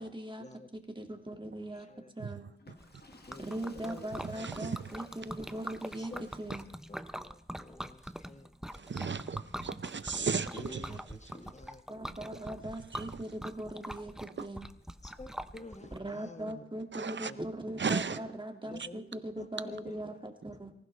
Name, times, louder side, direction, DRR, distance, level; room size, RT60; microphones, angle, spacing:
voice 1, 0.0-0.4 0.7-1.9 2.2-2.5 3.4-6.1 6.4-6.6 10.9-11.0 11.9-14.7 15.9-20.7, right 1 dB, 25° right, 2.0 m, -40 dB
voice 2, 1.7-2.1 3.0-3.4 3.7-4.1 6.0-6.3 6.9-7.0 7.2-8.5 10.1-11.8 15.0-16.7 17.3-17.4 18.7-19.0 19.4-20.0, left 2 dB, 35° left, 1.3 m, -49 dB
Water / Toilet flush, 2.5-7.0, left 2 dB, 55° left, 1.7 m, -59 dB
Liquid, 2.8-16.0, equal, 5° right, 0.7 m, -44 dB
voice 3, 4.2-4.9 8.7-10.8 12.9-13.2 14.4-14.5 16.9-17.3 17.8-18.2 18.8-18.9, right 5 dB, 65° right, 0.8 m, -35 dB
24.0 x 15.5 x 3.3 m
wide cardioid pair, 65°, 20 cm